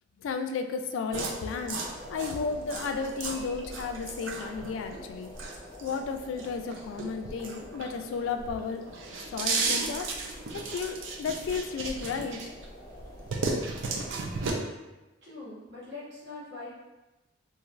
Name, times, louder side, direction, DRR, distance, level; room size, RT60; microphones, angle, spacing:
voice 1, 0.2-1.8 2.1-5.3 5.8-8.8 9.3-10.1 10.5-12.4, left 5 dB, 85° left, 7 dB, 0.3 m, -33 dB
sound 1, 1.1-14.5, left 1 dB, 20° left, 0.6 m, -47 dB
sound 2, 1.1-8.2 8.6-12.7 13.0-14.5, right 4 dB, 85° right, 0.4 m, -34 dB
voice 2, 15.2-16.7, left 3 dB, 60° right, -8 dB, 1.2 m, -42 dB
3.0 x 2.6 x 2.4 m, 1.1 s
head